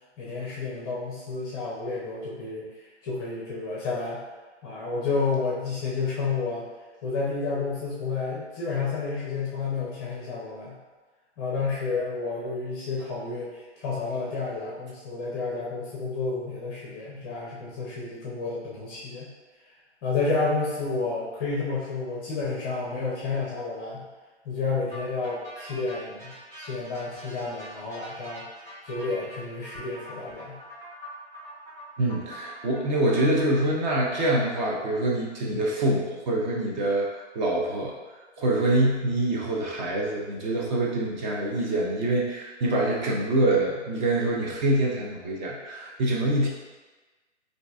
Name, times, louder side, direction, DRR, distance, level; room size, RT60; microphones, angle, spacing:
voice 1, 0.2-2.7 3.0-4.2 4.6-6.7 7.0-10.8 11.4-19.3 20.0-24.1 24.4-28.5 28.8-30.6, left 4 dB, 20° left, -5 dB, 0.5 m, -30 dB
sound 1, 24.9-33.5, equal, 20° right, 1.1 m, -44 dB
voice 2, 32.0-46.5, right 1 dB, 40° right, -3 dB, 0.7 m, -25 dB
3.8 x 2.6 x 2.3 m, 1.3 s
hypercardioid pair, 135°, 36 cm